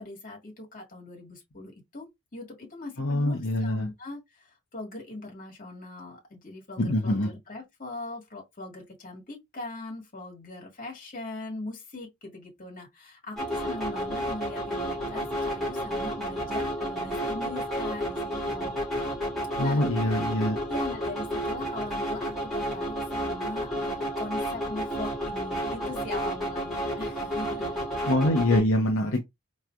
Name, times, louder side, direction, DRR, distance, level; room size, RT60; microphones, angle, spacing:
voice 1, 0.0-2.1 2.3-18.8 19.6-19.8 20.7-27.8 28.5-28.7, left 2 dB, 40° left, 1.7 m, -40 dB
voice 2, 3.0-3.9 6.8-7.3 19.6-20.6 28.0-29.2, left 1 dB, 65° left, 0.7 m, -24 dB
sound 1, 13.4-28.6, equal, ahead, 2.6 m, -31 dB
4.5 x 3.1 x 2.5 m
head